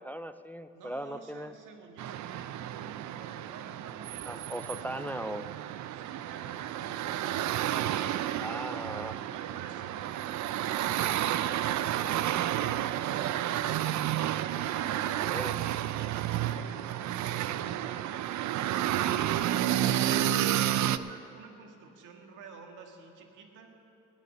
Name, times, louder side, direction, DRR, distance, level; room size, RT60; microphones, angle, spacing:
voice 1, 0.0-1.5 4.2-5.5 8.4-9.3 15.3-15.6, right 1 dB, 5° left, 12 dB, 0.3 m, -38 dB
voice 2, 0.7-5.5 5.9-8.8 9.3-12.3 15.9-19.2 19.7-23.8, right 5 dB, 90° right, 3 dB, 1.8 m, -51 dB
sound 1, 2.0-21.0, right 12 dB, 70° right, 0.5 m, -31 dB
18.5 x 6.9 x 8.1 m, 3.0 s
cardioid pair, 90°, 30 cm